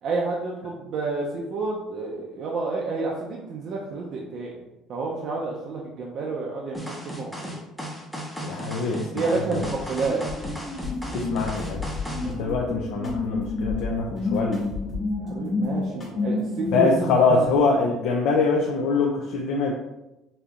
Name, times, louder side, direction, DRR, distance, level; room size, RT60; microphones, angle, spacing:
voice 1, 0.0-4.5 4.9-7.6 9.1-10.2 12.2-12.4 15.2-16.9, right 3 dB, 45° right, -2 dB, 0.5 m, -29 dB
sound 1, 6.7-12.3, right 1 dB, ahead, 0.6 m, -35 dB
voice 2, 8.4-9.6 11.1-11.8 12.2-14.6 16.7-19.7, left 4 dB, 75° left, 0 dB, 0.4 m, -24 dB
sound 2, 9.6-17.6, left 3 dB, 50° left, 1.3 m, -30 dB
sound 3, 10.8-12.4 13.0-15.3 15.6-16.6, left 5 dB, 25° left, 1.1 m, -37 dB
5.1 x 2.7 x 2.4 m, 0.98 s
cardioid pair, 160°, 0 cm